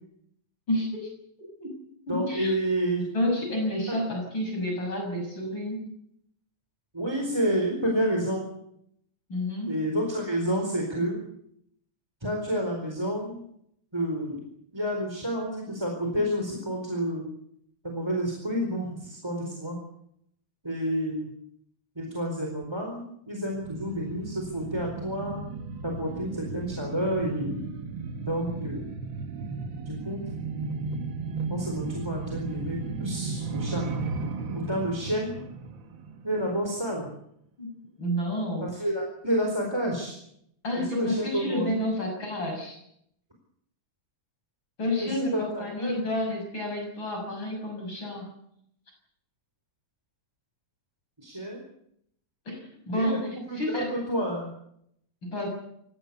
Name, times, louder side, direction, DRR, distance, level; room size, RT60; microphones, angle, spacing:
voice 1, 0.7-1.1 1.6-2.5 3.1-5.8 9.3-9.7 37.6-37.7 38.0-38.7 40.6-42.8 44.8-48.3 52.5-53.3 53.5-53.9 55.2-55.5, left 1 dB, 35° left, 1 dB, 7.2 m, -30 dB
voice 2, 2.1-3.1 3.9-4.0 6.9-8.5 9.7-11.2 12.2-13.4 13.9-14.4 14.7-17.3 17.8-19.8 20.6-21.3 22.0-25.4 25.8-27.6 28.3-28.9 29.9-30.2 31.5-33.8 34.5-35.4 36.2-37.1 38.6-40.1 40.7-41.7 45.0-46.0 51.2-51.6 52.9-54.5, equal, 10° right, 1 dB, 4.1 m, -29 dB
sound 1, 23.5-36.7 37.0-37.1, right 4 dB, 50° right, 1.7 m, -35 dB
27.5 x 16.0 x 8.3 m, 0.74 s
omnidirectional pair, 3.6 m